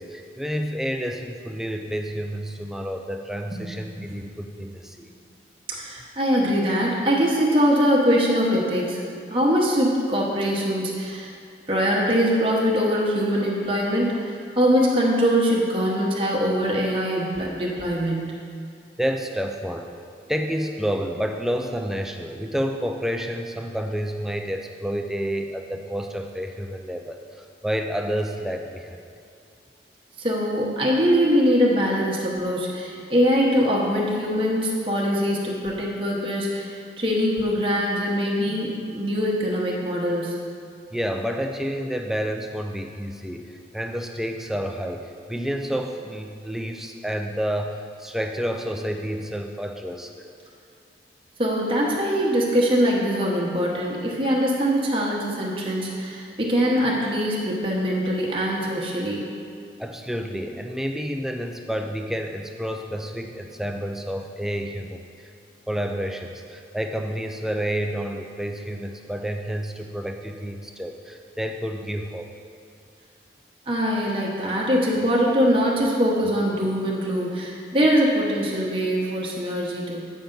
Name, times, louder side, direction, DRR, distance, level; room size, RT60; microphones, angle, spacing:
voice 1, 0.0-5.1 19.0-19.9 20.3-29.0 40.9-50.1 59.8-65.3 65.7-72.3, equal, ahead, 4 dB, 0.4 m, -29 dB
voice 2, 5.7-9.0 9.3-11.3 11.7-18.4 30.2-40.4 51.4-59.3 73.7-80.1, equal, 30° right, -4 dB, 1.0 m, -22 dB
8.3 x 5.4 x 3.9 m, 2.4 s
head